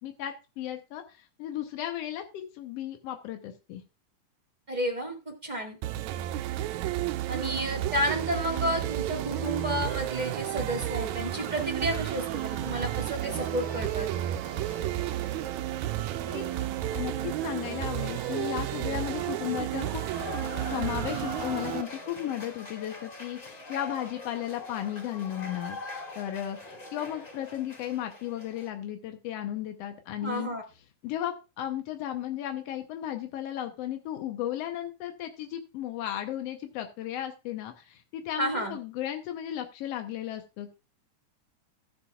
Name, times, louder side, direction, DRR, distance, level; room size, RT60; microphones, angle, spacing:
voice 1, 0.0-3.8 16.3-16.5 16.9-20.0 20.7-25.8 26.1-30.5 31.0-40.8, left 11 dB, 75° left, 5 dB, 1.5 m, -35 dB
voice 2, 4.7-5.8 7.3-14.1 30.2-30.6 38.4-38.7, right 1 dB, 20° right, 1 dB, 1.1 m, -31 dB
sound 1, 5.8-21.8, right 14 dB, 85° right, 1.6 m, -32 dB
sound 2, 9.3-28.7, left 2 dB, 20° left, 3.8 m, -44 dB
16.0 x 7.1 x 2.4 m, 0.29 s
omnidirectional pair, 3.8 m